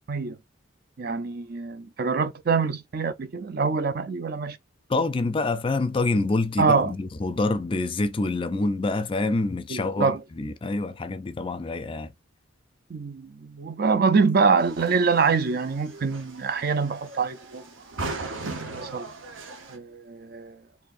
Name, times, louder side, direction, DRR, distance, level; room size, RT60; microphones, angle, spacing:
voice 1, 1.0-4.6 6.6-6.9 9.7-10.2 12.9-17.6 18.2-18.4 18.7-19.1 19.7-20.6, right 5 dB, 50° right, 0.4 m, -25 dB
voice 2, 4.9-12.1, left 2 dB, 25° left, 0.4 m, -26 dB
sound 1, 14.6-19.8, right 3 dB, 80° right, 0.9 m, -38 dB
4.2 x 2.7 x 2.4 m
head